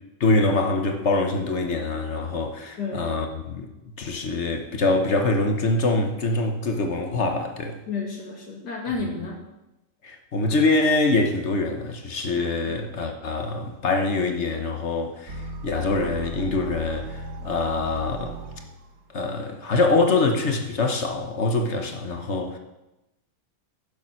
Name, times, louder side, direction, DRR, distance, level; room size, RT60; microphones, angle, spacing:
voice 1, 0.2-3.7 4.0-7.8 10.0-18.4 19.1-22.6, left 3 dB, 50° left, 1.2 m, -24 dB
voice 2, 2.8-3.2 7.9-9.4 12.7-12.8, left 4 dB, 90° left, 2.7 m, -31 dB
sound 1, 15.3-19.1, right 3 dB, 65° right, 1.6 m, -37 dB
11.0 x 7.2 x 5.8 m
omnidirectional pair, 1.7 m